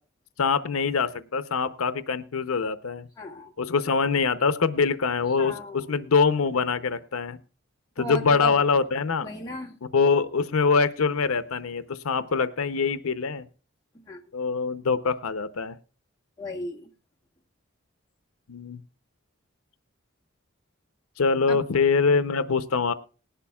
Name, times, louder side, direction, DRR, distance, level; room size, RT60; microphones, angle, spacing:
voice 1, 0.4-3.1 3.6-7.4 8.0-9.3 9.9-13.5 14.3-15.8 18.5-18.8 21.2-22.9, left 5 dB, 85° left, 13 dB, 0.7 m, -24 dB
voice 2, 3.2-3.5 5.4-6.1 8.0-8.6 9.2-9.8 14.1-14.2 16.4-16.9 21.5-21.6, left 1 dB, 20° left, -2 dB, 1.8 m, -36 dB
19.0 x 11.5 x 2.3 m, 0.36 s
head